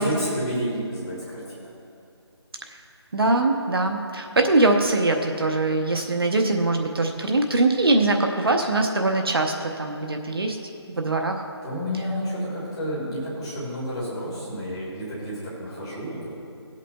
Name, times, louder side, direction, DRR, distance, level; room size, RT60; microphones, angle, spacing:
voice 1, 0.0-1.6 11.6-16.3, equal, 10° left, -9 dB, 1.7 m, -30 dB
voice 2, 3.1-10.6 10.9-11.5, right 2 dB, 55° right, 3 dB, 0.8 m, -22 dB
21.0 x 8.2 x 2.2 m, 2.5 s
figure-of-eight pair, 180°, 15 cm